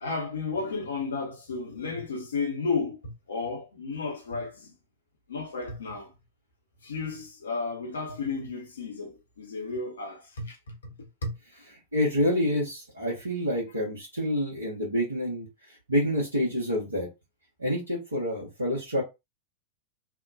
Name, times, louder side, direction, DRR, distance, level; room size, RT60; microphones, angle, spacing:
voice 1, 0.0-4.7 5.3-6.1 6.8-11.4, left 4 dB, 70° left, 0.8 m, -33 dB
voice 2, 11.9-17.1 17.6-19.0, left 1 dB, 80° right, 1.0 m, -28 dB
2.8 x 2.2 x 2.5 m
figure-of-eight pair, 90°, 0 cm